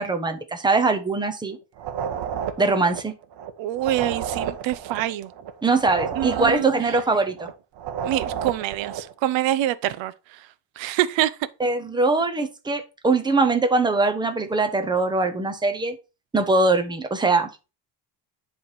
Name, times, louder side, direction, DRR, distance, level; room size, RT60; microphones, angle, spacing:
voice 1, 0.0-1.6 2.6-3.1 5.6-7.5 11.6-16.0 16.3-17.5, right 3 dB, 10° right, 0.9 m, -22 dB
sound 1, 1.8-9.1, right 8 dB, 65° right, 1.1 m, -31 dB
voice 2, 3.6-5.3 6.2-6.7 8.0-10.5 10.8-11.4, right 13 dB, 85° right, 0.8 m, -25 dB
10.5 x 3.5 x 4.6 m
cardioid pair, 145°, 44 cm